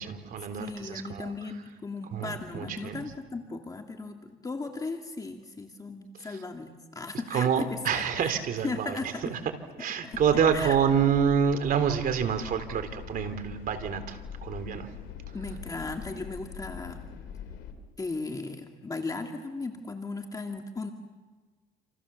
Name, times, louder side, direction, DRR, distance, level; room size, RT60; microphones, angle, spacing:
voice 1, 0.0-1.3 2.1-3.1 7.3-9.0 9.2-9.4 9.8-14.9, right 7 dB, 55° right, 8 dB, 3.5 m, -27 dB
voice 2, 0.6-8.3 8.6-9.2 10.0-10.8 15.3-17.0 18.0-20.9, left 3 dB, 20° left, 3 dB, 2.1 m, -36 dB
sound 1, 10.1-17.7, left 8 dB, 85° left, 3.5 m, -43 dB
28.5 x 28.0 x 7.1 m, 1.4 s
cardioid pair, 110°, 17 cm